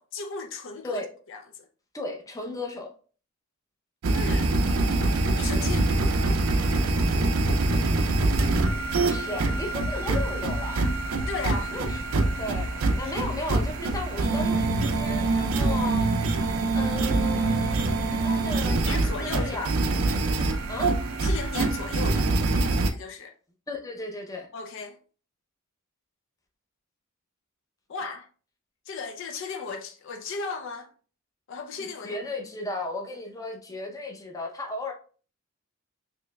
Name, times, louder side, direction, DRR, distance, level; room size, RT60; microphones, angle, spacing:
voice 1, 0.0-1.0 1.3-1.4 4.1-4.5 5.4-5.9 9.3-9.4 11.3-11.8 13.0-13.1 18.7-19.7 21.2-22.3 22.9-23.3 24.5-25.0 27.9-28.3 28.9-30.9 31.5-32.2, left 4 dB, 60° left, 0.4 m, -35 dB
voice 2, 1.9-2.9 9.0-10.9 11.7-12.0 12.4-19.7 20.7-20.9 23.7-24.5 31.8-34.9, left 2 dB, 15° left, 0.6 m, -35 dB
sound 1, 4.0-22.9, right 2 dB, 80° right, 0.5 m, -25 dB
4.5 x 3.1 x 2.2 m
head